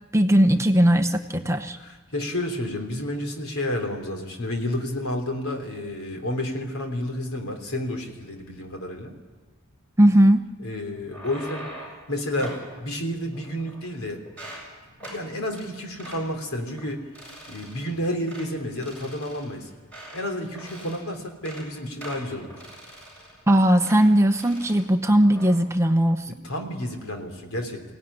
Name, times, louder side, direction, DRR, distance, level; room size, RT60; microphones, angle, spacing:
voice 1, 0.1-1.8 10.0-10.4 23.5-26.3, right 1 dB, 15° right, 7 dB, 0.8 m, -18 dB
voice 2, 1.7-9.1 10.6-11.7 12.1-14.2 15.1-17.1 17.5-19.7 20.1-22.5 26.4-27.8, left 1 dB, 75° left, 4 dB, 3.4 m, -30 dB
sound 1, 10.9-12.0 12.4-12.7 13.3-14.0 14.2-14.7 15.0-15.2 15.5-15.7 16.0-16.2 16.7-16.9 17.1-17.9 18.3-18.5 18.8-20.3 20.5-21.0 21.3-21.7 22.0-23.4 23.8-24.1 24.3-24.8 25.2-25.5, right 1 dB, 5° left, 7.7 m, -42 dB
23.0 x 17.0 x 10.0 m, 1.3 s
head